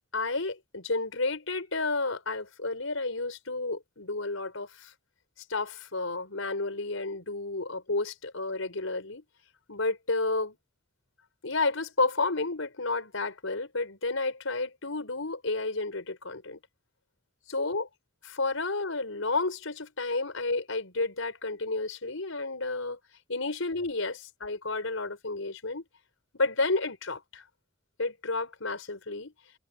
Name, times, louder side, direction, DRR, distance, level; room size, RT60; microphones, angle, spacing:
voice 1, 0.1-4.9 5.5-9.2 9.7-10.6 11.4-16.6 17.5-17.9 18.2-23.0 23.3-25.8 26.3-27.4 28.0-29.3, left 3 dB, 90° left, 4.8 m, -31 dB
head